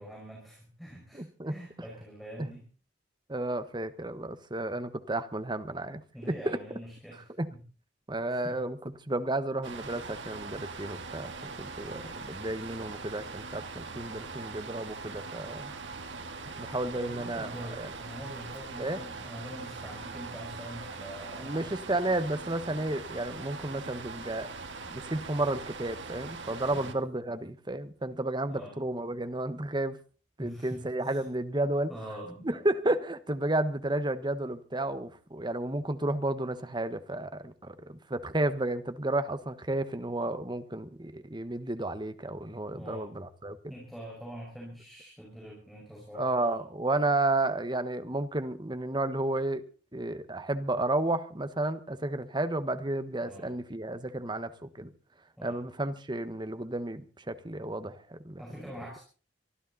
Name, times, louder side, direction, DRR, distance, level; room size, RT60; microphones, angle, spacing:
voice 1, 0.0-2.7 6.1-7.6 8.4-8.6 16.9-21.7 26.7-26.9 28.5-28.8 30.4-31.2 31.9-32.5 42.7-43.1 43.7-46.4 53.2-53.5 55.4-55.6 58.4-59.0, equal, ahead, 5.5 m, -44 dB
voice 2, 1.1-1.6 2.4-2.5 3.3-6.0 6.3-6.8 7.4-7.5 8.1-8.8 9.1-15.7 16.6-17.9 18.8-19.0 21.4-24.5 24.9-30.0 30.4-31.9 32.4-43.7 46.1-49.6 49.9-54.9 55.4-58.4, right 2 dB, 25° right, 1.3 m, -32 dB
sound 1, 9.6-26.9, right 4 dB, 85° right, 2.0 m, -42 dB
24.0 x 13.5 x 4.1 m
head